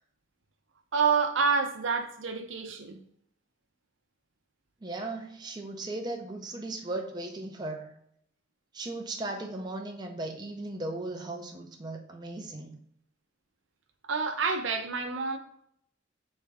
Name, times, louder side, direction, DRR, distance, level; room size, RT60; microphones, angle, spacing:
voice 1, 0.9-3.0 14.1-15.4, right 5 dB, 85° right, 0.7 m, -28 dB
voice 2, 4.8-7.9 8.7-12.8, right 2 dB, 20° right, 0.5 m, -37 dB
3.4 x 3.2 x 4.7 m
head